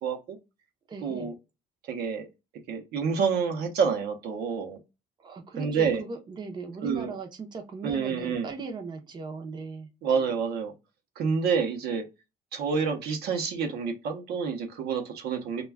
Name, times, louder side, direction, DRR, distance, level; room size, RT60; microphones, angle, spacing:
voice 1, 0.0-0.4 1.0-1.3 1.9-2.3 2.7-4.8 5.6-6.0 6.8-7.1 7.8-8.5 10.0-10.7 11.2-12.0 12.5-15.7, right 6 dB, 75° right, 0.7 m, -28 dB
voice 2, 0.9-1.3 5.2-9.9, right 4 dB, 25° right, 0.6 m, -38 dB
2.2 x 2.2 x 3.3 m
cardioid pair, 110°, 17 cm